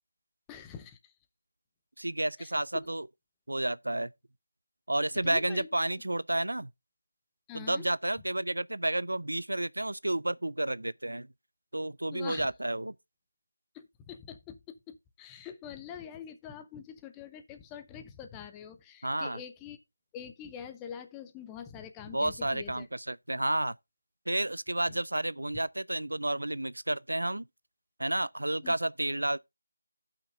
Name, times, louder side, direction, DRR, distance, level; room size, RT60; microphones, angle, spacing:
voice 1, 0.5-1.1 2.4-2.5 5.2-5.7 7.5-7.8 12.1-12.5 13.7-19.8 20.1-22.9 24.9-25.0 28.6-28.7, left 8 dB, 10° left, 0.6 m, -45 dB
voice 2, 2.0-3.1 3.5-4.1 4.9-6.7 7.5-11.3 11.7-12.9 19.0-19.4 22.1-23.8 24.3-27.4 28.0-29.4, right 1 dB, 85° right, 0.4 m, -31 dB
15.0 x 5.9 x 2.6 m
figure-of-eight pair, 165°, 0 cm